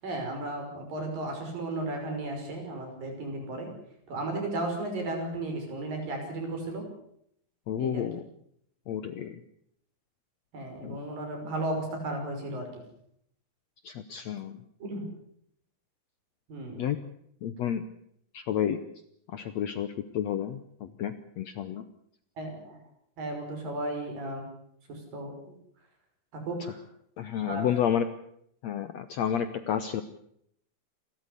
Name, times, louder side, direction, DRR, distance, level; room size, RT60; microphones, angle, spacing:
voice 1, 0.0-3.7 4.1-6.9 7.8-8.0 10.5-12.8 14.8-15.1 16.5-16.8 22.4-22.8 23.2-24.4 24.9-25.5 26.3-26.8 27.4-27.7, right 2 dB, 70° right, 3 dB, 7.4 m, -34 dB
voice 2, 7.7-8.2 8.9-9.4 10.8-11.0 13.8-14.6 16.8-17.0 17.4-17.8 18.3-18.8 19.3-21.8 27.2-28.0 28.6-30.0, left 9 dB, 70° left, 11 dB, 1.7 m, -30 dB
28.5 x 13.5 x 8.3 m, 0.70 s
omnidirectional pair, 4.2 m